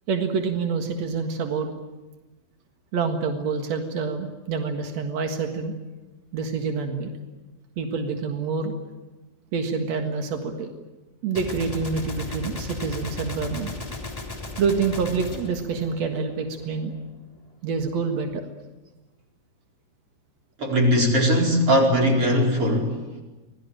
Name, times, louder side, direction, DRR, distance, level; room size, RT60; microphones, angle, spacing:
voice 1, 0.1-1.7 2.9-5.7 6.3-7.1 7.8-8.7 9.5-10.7 11.2-13.7 14.6-16.9 17.6-18.4, right 5 dB, 65° right, 5 dB, 1.7 m, -27 dB
Gunshot gunfire, 11.3-16.6, left 2 dB, 15° left, 1.5 m, -35 dB
voice 2, 20.6-23.0, equal, 30° right, 0 dB, 5.0 m, -20 dB
26.0 x 19.0 x 9.1 m, 1.1 s
omnidirectional pair, 5.8 m